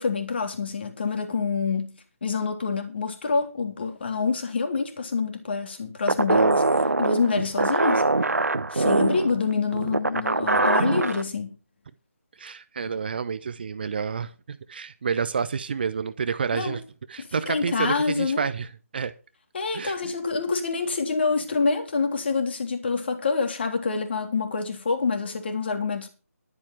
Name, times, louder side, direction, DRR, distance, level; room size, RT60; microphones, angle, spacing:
voice 1, 0.0-6.6 7.0-8.1 8.7-11.6 16.5-16.8 17.2-18.5 19.5-26.1, left 4 dB, 40° left, 3.4 m, -27 dB
sound 1, 6.1-11.2, right 3 dB, 70° right, 1.1 m, -23 dB
voice 2, 12.4-16.8 17.1-18.7 18.9-19.1 19.7-20.1, right 6 dB, 35° right, 0.8 m, -29 dB
12.0 x 8.8 x 5.9 m
figure-of-eight pair, 155°, 9 cm